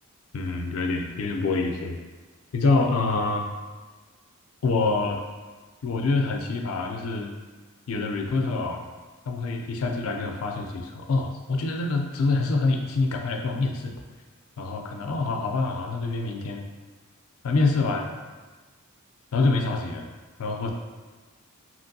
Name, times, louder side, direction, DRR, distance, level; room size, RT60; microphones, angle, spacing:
voice 1, 0.3-2.0 2.5-3.5 4.6-5.2 5.8-7.3 7.9-8.8 9.3-13.9 14.6-16.6 17.4-18.1 19.3-20.0 20.4-20.7, left 3 dB, 70° left, 3 dB, 0.4 m, -26 dB
2.9 x 2.6 x 2.6 m, 1.4 s
head